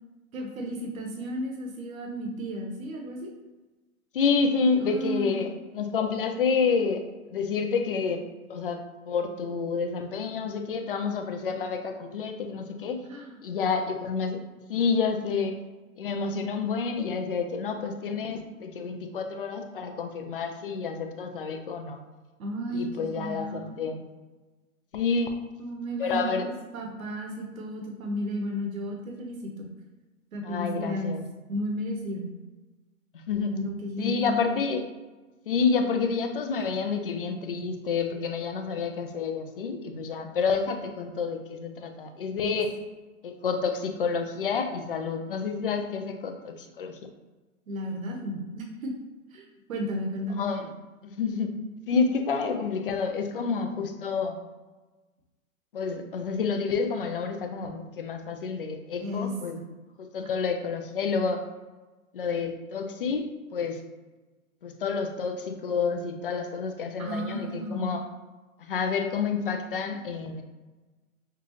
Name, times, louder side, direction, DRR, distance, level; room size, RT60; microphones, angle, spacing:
voice 1, 0.3-3.3 4.8-5.5 13.1-13.4 22.4-23.9 25.6-29.7 30.3-31.2 31.5-32.3 33.5-34.6 42.4-42.6 47.7-48.9 49.3-50.7 59.0-59.6 67.0-68.0, equal, 70° right, 1 dB, 1.1 m, -33 dB
voice 2, 4.1-7.0 7.3-13.0 13.4-14.4 14.7-15.6 16.0-22.0 22.7-24.1 24.9-25.3 26.0-26.5 30.4-31.3 33.1-33.6 34.0-34.9 35.5-42.7 43.2-47.0 50.4-50.7 51.0-51.6 51.9-54.4 55.7-59.6 60.0-61.4 62.1-63.8 64.6-68.1 68.6-70.4, left 5 dB, 40° left, 5 dB, 0.4 m, -29 dB
5.9 x 2.3 x 2.9 m, 1.2 s
hypercardioid pair, 155°, 42 cm